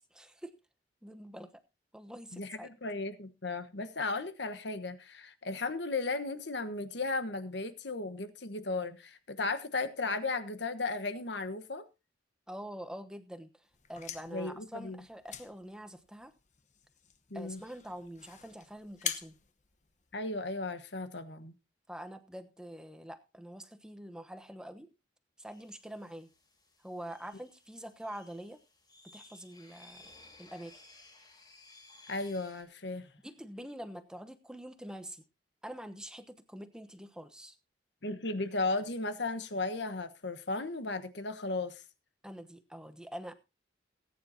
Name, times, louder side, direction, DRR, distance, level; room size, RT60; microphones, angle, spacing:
voice 1, 0.1-0.5 1.0-1.5 1.9-2.7 12.5-16.3 17.3-19.4 21.9-24.9 25.4-26.3 26.8-28.6 29.0-30.1 30.4-30.7 33.2-35.2 35.6-37.5 42.2-43.3, equal, 5° right, 1.0 m, -45 dB
voice 2, 2.3-11.8 14.3-15.0 17.3-17.6 20.1-21.5 32.1-33.1 38.0-41.8, left 3 dB, 65° left, 1.3 m, -35 dB
sound 1, 13.7-20.5, left 8 dB, 40° left, 1.1 m, -45 dB
sound 2, 25.5-32.6, left 2 dB, 20° left, 3.8 m, -58 dB
19.0 x 9.5 x 2.8 m
head